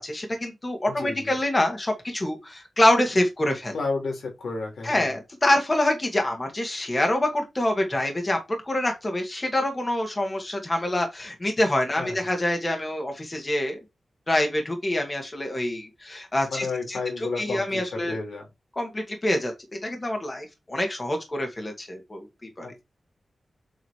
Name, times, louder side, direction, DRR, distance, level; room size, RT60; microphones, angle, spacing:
voice 1, 0.0-3.7 4.8-13.8 14.3-17.0 17.4-18.2 18.8-19.5 19.8-22.7, left 1 dB, 25° left, 2.1 m, -26 dB
voice 2, 0.8-1.3 3.7-5.1 11.9-12.2 16.5-18.5 22.6-22.8, left 3 dB, 90° left, 3.7 m, -32 dB
7.7 x 3.9 x 4.6 m
wide cardioid pair, 150°, 0 cm